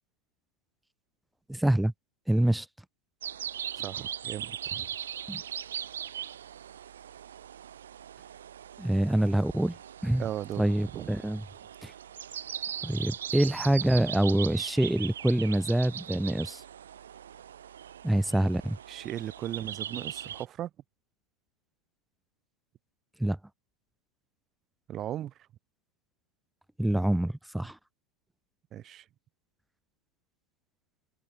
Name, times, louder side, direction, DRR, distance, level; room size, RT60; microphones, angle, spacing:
voice 1, 1.5-1.9 2.3-2.7 5.3-5.4 8.8-9.8 10.0-10.2 10.6-11.4 11.8-11.9 12.8-16.6 18.0-18.8 23.2-23.4 26.8-27.8, right 1 dB, 5° right, 0.5 m, -26 dB
sound 1, 3.2-20.4, right 9 dB, 65° right, 3.8 m, -40 dB
voice 2, 3.8-4.9 10.2-10.7 10.9-11.1 18.9-20.7 24.9-25.3 28.7-29.0, right 11 dB, 30° right, 5.7 m, -37 dB
figure-of-eight pair, 90°, 0 cm